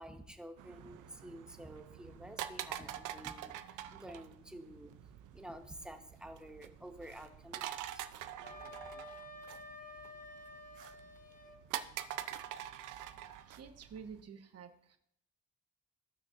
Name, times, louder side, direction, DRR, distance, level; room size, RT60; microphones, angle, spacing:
voice 1, 0.0-5.0 5.3-8.1 8.5-8.8, right 1 dB, 5° right, 5 dB, 1.1 m, -50 dB
sound 1, 0.6-14.2, right 11 dB, 85° right, 0.6 m, -46 dB
Wind instrument woodwind instrument, 8.4-11.6, left 1 dB, 25° left, 1.3 m, -50 dB
voice 2, 13.5-15.0, right 6 dB, 55° right, 6 dB, 1.1 m, -50 dB
15.0 x 6.1 x 2.6 m, 0.70 s
cardioid pair, 90°, 30 cm